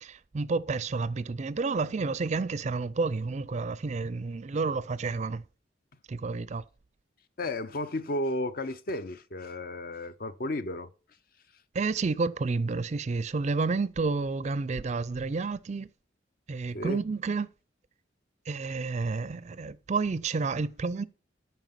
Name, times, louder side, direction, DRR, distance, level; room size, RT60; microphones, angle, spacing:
voice 1, 0.0-5.4 6.1-6.6 11.7-15.9 16.5-17.5 18.5-21.1, right 4 dB, 40° right, 0.4 m, -30 dB
voice 2, 7.4-10.9 16.7-17.0, left 1 dB, 50° left, 0.7 m, -33 dB
9.1 x 5.5 x 5.8 m
head